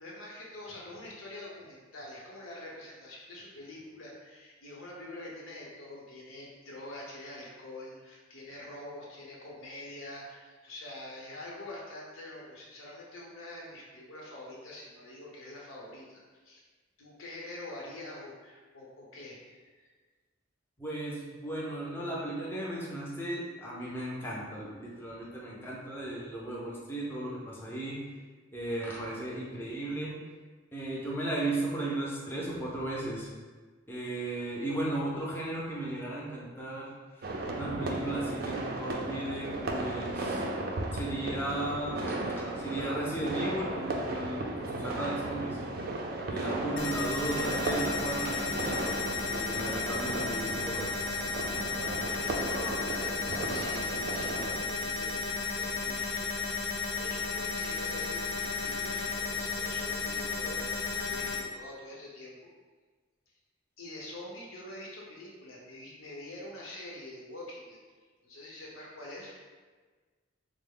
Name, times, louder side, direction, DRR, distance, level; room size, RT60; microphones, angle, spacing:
voice 1, 0.0-16.6 17.0-19.9 52.0-56.3 57.0-62.3 63.3-63.4 63.8-67.8 68.2-69.4, left 1 dB, 90° left, -3 dB, 0.8 m, -45 dB
voice 2, 20.8-28.0 28.5-30.1 30.7-33.3 33.9-36.9 37.5-40.4 40.9-45.6 46.3-51.0, right 1 dB, 10° left, -5 dB, 0.5 m, -35 dB
sound 1, 37.2-54.6, right 2 dB, 50° right, 0.4 m, -35 dB
sound 2, 46.8-61.4, left 4 dB, 65° left, 0.5 m, -33 dB
3.6 x 2.0 x 3.6 m, 1.4 s
head